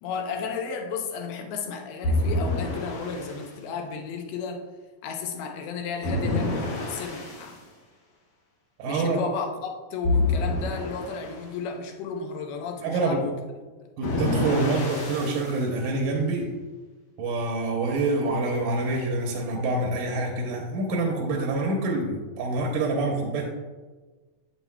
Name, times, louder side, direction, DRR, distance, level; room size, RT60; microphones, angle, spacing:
voice 1, 0.0-4.6 5.0-7.6 8.8-13.9, left 5 dB, 85° left, 3 dB, 2.7 m, -33 dB
sound 1, 2.0-3.5 6.0-7.5 10.0-11.4 14.0-15.6, left 2 dB, 65° left, 3.2 m, -27 dB
voice 2, 8.8-9.2 12.8-13.2 14.0-16.5 17.2-23.4, right 2 dB, 75° right, 1 dB, 2.1 m, -26 dB
8.3 x 8.0 x 2.2 m, 1.3 s
omnidirectional pair, 4.3 m